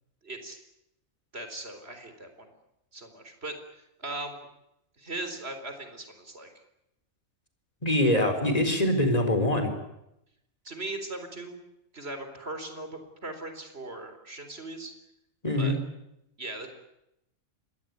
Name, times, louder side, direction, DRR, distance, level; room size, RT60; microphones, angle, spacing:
voice 1, 0.2-0.6 1.3-2.5 2.9-3.6 4.0-4.5 5.0-6.5 10.6-11.5 11.9-14.9 15.5-15.8 16.4-16.7, right 2 dB, 45° right, 7 dB, 4.4 m, -39 dB
voice 2, 7.8-9.7 15.4-15.8, left 1 dB, 25° left, 6 dB, 4.4 m, -24 dB
26.5 x 21.0 x 9.5 m, 0.84 s
omnidirectional pair, 1.4 m